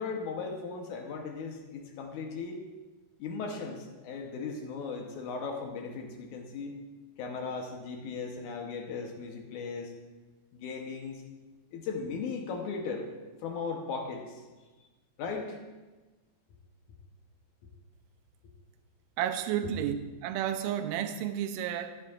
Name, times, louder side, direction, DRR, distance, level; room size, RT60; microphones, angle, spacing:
voice 1, 0.0-2.6 3.2-6.7 7.2-9.9 10.5-11.2 11.7-13.1 13.4-14.4 15.2-15.6 19.6-19.7, left 4 dB, 70° left, 2 dB, 2.1 m, -37 dB
voice 2, 19.2-20.0 20.2-22.0, right 10 dB, 80° right, 9 dB, 2.0 m, -31 dB
14.5 x 9.7 x 2.4 m, 1.2 s
omnidirectional pair, 4.2 m